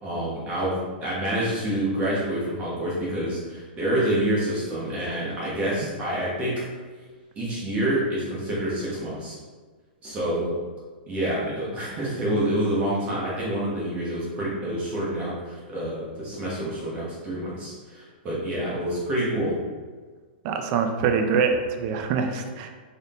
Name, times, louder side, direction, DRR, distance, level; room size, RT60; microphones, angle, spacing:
voice 1, 0.0-6.6 7.4-9.4 10.0-10.5 11.1-19.5, right 1 dB, 25° right, -7 dB, 1.2 m, -27 dB
voice 2, 20.4-22.7, right 5 dB, 40° right, 5 dB, 0.4 m, -24 dB
3.9 x 3.6 x 2.5 m, 1.4 s
hypercardioid pair, 135°, 5 cm